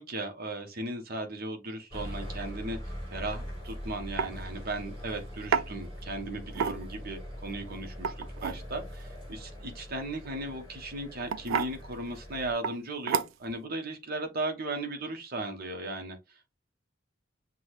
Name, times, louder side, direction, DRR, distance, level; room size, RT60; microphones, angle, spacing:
voice 1, 0.0-2.8 3.1-8.1 8.4-16.2, right 2 dB, 50° right, 1.0 m, -36 dB
sound 1, 1.9-12.5, equal, 30° right, 2.9 m, -42 dB
sound 2, 3.5-3.7 4.2-4.3 5.5-5.7 6.5-7.0 7.9-8.6 10.3-10.5 11.3-11.7 12.6-12.8 13.1-13.5, right 7 dB, 75° right, 0.3 m, -30 dB
6.1 x 2.3 x 3.1 m
head